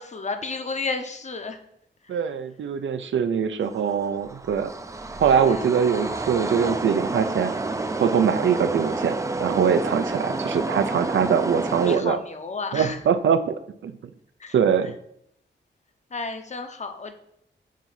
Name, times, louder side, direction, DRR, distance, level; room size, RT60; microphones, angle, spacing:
voice 1, 0.0-1.6 5.4-5.7 11.8-13.0 14.4-14.5 16.1-17.1, left 4 dB, 35° left, 7 dB, 0.6 m, -32 dB
voice 2, 2.1-4.7 5.2-7.5 8.0-12.2 12.7-13.9 14.5-14.9, right 7 dB, 90° right, 10 dB, 0.5 m, -23 dB
sound 1, 3.6-12.0, right 3 dB, 15° right, 0.3 m, -29 dB
7.3 x 2.7 x 5.7 m, 0.74 s
wide cardioid pair, 155°, 19 cm